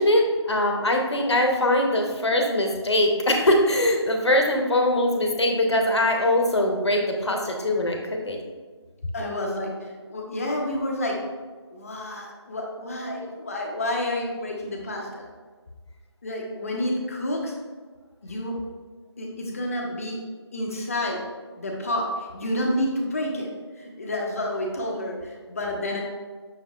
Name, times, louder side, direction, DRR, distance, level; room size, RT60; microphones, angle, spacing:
voice 1, 0.0-8.0 8.3-8.4, left 1 dB, 75° left, 2 dB, 0.8 m, -22 dB
voice 2, 9.1-9.7 10.1-11.2 11.7-15.2 16.2-17.5 18.2-18.5 19.2-20.2 20.5-21.2 21.5-23.5 23.8-26.0, left 1 dB, 30° left, 0 dB, 0.6 m, -29 dB
6.0 x 3.7 x 2.4 m, 1.4 s
figure-of-eight pair, 160°, 15 cm